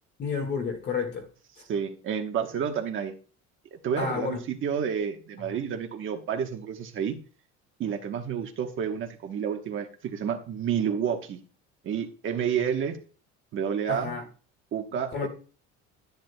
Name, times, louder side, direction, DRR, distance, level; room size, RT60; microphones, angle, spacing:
voice 1, 0.2-1.3 4.0-4.4 13.9-14.2 15.1-15.3, left 5 dB, 35° left, 1.9 m, -30 dB
voice 2, 1.7-3.1 3.7-7.2 7.8-11.4 11.8-13.0 13.5-14.1 14.7-15.3, right 8 dB, 40° right, 1.1 m, -30 dB
11.5 x 10.5 x 2.2 m
cardioid pair, 170°, 31 cm